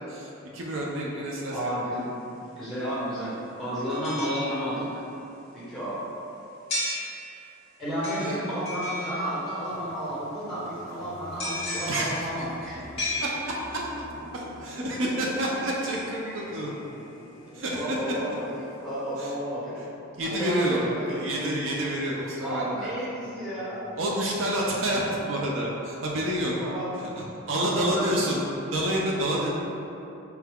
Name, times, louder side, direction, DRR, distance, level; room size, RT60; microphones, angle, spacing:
voice 1, 0.1-1.7 8.1-8.4 11.9-12.5 13.2-14.1 14.3-16.7 17.5-18.2 19.2-19.3 20.2-22.9 24.0-26.5 27.0-28.4 28.7-29.5, right 1 dB, 65° right, -3 dB, 0.5 m, -29 dB
voice 2, 1.5-2.2 2.6-4.9 5.5-6.0 7.8-12.8 17.5-18.4 18.8-19.7 20.2-21.2 22.4-23.8 26.6-26.9 27.6-28.2, equal, ahead, -11 dB, 1.1 m, -32 dB
sound 1, 1.9-2.0 3.9-5.1 6.7-7.6 8.0-9.7 11.4-13.9 15.8-17.0 17.5-17.6, left 1 dB, 30° left, 1.0 m, -35 dB
sound 2, 9.6-25.1, left 2 dB, 65° left, 0.4 m, -49 dB
4.5 x 2.2 x 3.5 m, 2.9 s
head